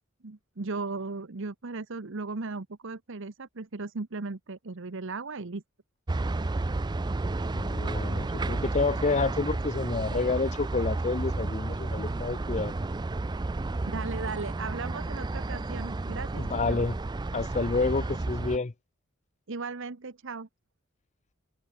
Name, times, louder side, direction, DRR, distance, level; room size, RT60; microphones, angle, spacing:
voice 1, 0.2-5.6 13.9-16.8 19.5-20.5, right 3 dB, 65° right, 1.0 m, -37 dB
sound 1, 6.1-18.6, right 2 dB, 20° right, 0.4 m, -32 dB
voice 2, 7.5-12.7 16.4-17.0 17.3-18.7, left 3 dB, 35° left, 0.7 m, -29 dB
head